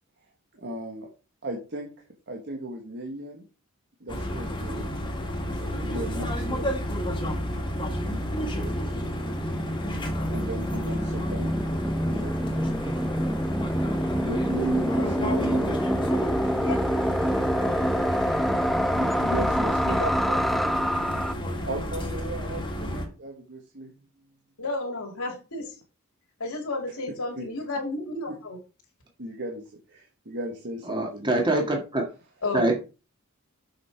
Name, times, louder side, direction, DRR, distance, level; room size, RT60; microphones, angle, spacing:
voice 1, 0.5-1.1 1.4-1.9 2.3-3.4 4.0-5.0 5.8-6.7 10.3-11.5 12.1-12.3 14.2-15.8 18.7-20.0 21.6-23.9 27.4-27.5 28.3-28.4 29.2-29.6 29.9-31.4, right 1 dB, 55° right, 1.5 m, -36 dB
sound 1, 4.1-23.1, equal, 25° left, 1.9 m, -31 dB
sound 2, 5.8-5.9 6.1-21.3, equal, ahead, 0.3 m, -27 dB
voice 2, 16.6-17.3 17.6-18.1 19.6-19.7 20.0-20.4 24.6-25.7 26.4-28.6 32.4-32.8, left 2 dB, 80° left, 2.3 m, -33 dB
voice 3, 30.9-32.0 32.5-32.8, right 1 dB, 20° right, 1.9 m, -24 dB
7.5 x 5.7 x 4.6 m
head